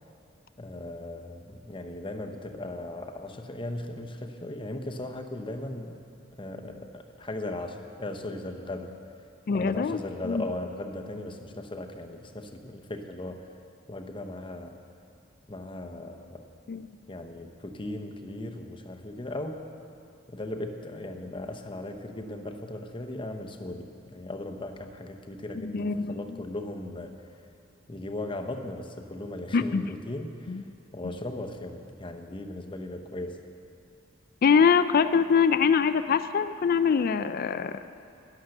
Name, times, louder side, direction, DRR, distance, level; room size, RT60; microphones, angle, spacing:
voice 1, 0.6-6.0 6.4-8.9 9.5-13.4 13.9-14.8 15.5-16.5 17.1-19.6 20.3-27.1 27.9-30.6 30.9-33.4, left 1 dB, 25° left, 5 dB, 0.8 m, -37 dB
voice 2, 9.5-10.0 10.2-10.4 16.7-16.9 25.6-26.2 29.5-29.9 30.5-30.6 34.4-37.7, left 6 dB, 50° left, 12 dB, 0.4 m, -23 dB
12.0 x 11.0 x 6.5 m, 2.6 s
head